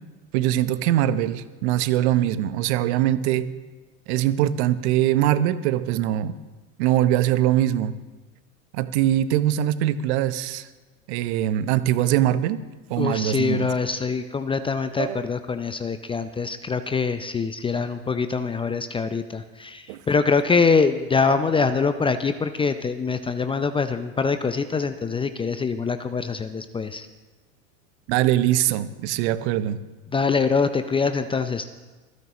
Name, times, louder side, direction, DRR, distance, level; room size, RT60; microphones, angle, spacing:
voice 1, 0.3-3.5 4.1-6.3 6.8-8.0 8.7-10.7 11.1-12.6 12.9-13.7 15.0-15.3 19.9-20.0 28.1-29.8, right 12 dB, 55° right, 13 dB, 1.0 m, -22 dB
voice 2, 13.0-27.1 30.1-31.7, left 5 dB, 15° left, 10 dB, 0.6 m, -24 dB
27.0 x 9.4 x 3.1 m, 1.3 s
hypercardioid pair, 90°, 41 cm